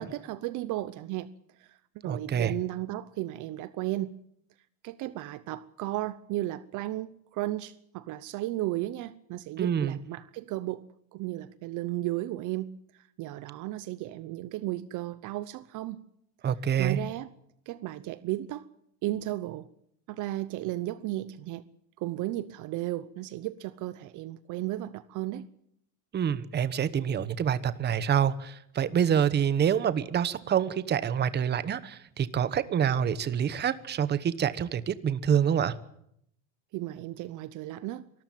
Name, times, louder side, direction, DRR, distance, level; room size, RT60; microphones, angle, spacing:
voice 1, 0.0-1.3 1.6-1.8 2.0-4.2 4.8-16.0 16.8-17.3 17.7-18.7 19.0-19.7 20.1-21.6 22.0-25.5 36.7-38.0, right 16 dB, 50° right, 0.9 m, -34 dB
voice 2, 2.1-2.5 9.6-10.0 16.4-17.0 26.1-35.7, right 8 dB, 25° right, 1.1 m, -27 dB
24.0 x 14.0 x 9.2 m
supercardioid pair, 135°, 39 cm